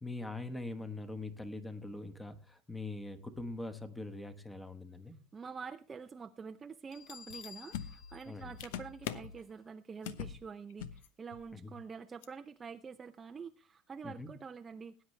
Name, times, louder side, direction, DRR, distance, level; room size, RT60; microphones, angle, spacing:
voice 1, 0.0-5.1 8.3-8.5 11.5-11.7 14.0-14.3, left 2 dB, 5° left, 10 dB, 1.2 m, -42 dB
voice 2, 5.3-15.0, right 5 dB, 20° right, 8 dB, 0.5 m, -47 dB
Bell, 6.9-9.6, left 7 dB, 40° left, 0.7 m, -53 dB
sound 1, 7.3-7.4 7.7-9.4 10.0-10.4 10.7-11.1 11.3-11.5 12.2-12.3, left 9 dB, 90° left, 0.9 m, -42 dB
18.5 x 9.6 x 3.2 m, 0.36 s
cardioid pair, 145°, 0 cm